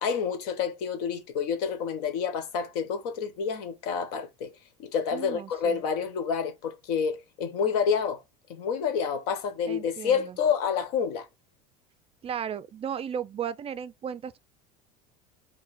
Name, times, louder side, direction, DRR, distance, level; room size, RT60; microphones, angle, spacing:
voice 1, 0.0-4.5 4.8-8.2 8.5-11.3, left 6 dB, 70° left, 1.2 m, -28 dB
voice 2, 5.1-5.8 9.7-10.4 12.2-14.4, right 8 dB, 30° right, 0.4 m, -35 dB
4.6 x 2.2 x 4.1 m
hypercardioid pair, 90°, 21 cm